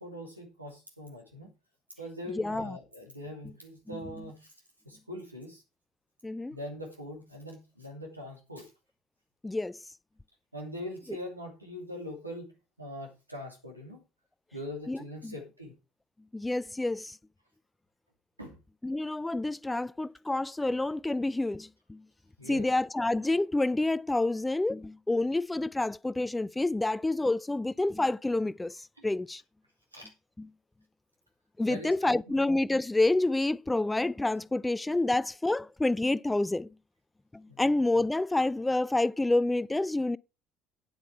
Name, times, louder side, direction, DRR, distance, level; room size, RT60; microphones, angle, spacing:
voice 1, 0.0-1.5 2.0-4.5 4.8-5.6 6.5-8.7 10.5-12.5 12.8-14.0 14.5-15.8 18.4-18.6 22.4-22.7 29.0-29.1 29.9-30.1 31.7-32.4 37.5-37.7, left 1 dB, 90° right, 2.7 m, -42 dB
voice 2, 2.4-2.7 6.2-6.6 9.4-9.7 14.9-15.0 15.2-15.3 16.3-17.1 18.8-22.0 22.5-28.7 29.0-29.4 31.6-36.7 37.6-40.2, left 2 dB, 10° left, 0.4 m, -28 dB
9.6 x 8.3 x 4.7 m
figure-of-eight pair, 55°, 0 cm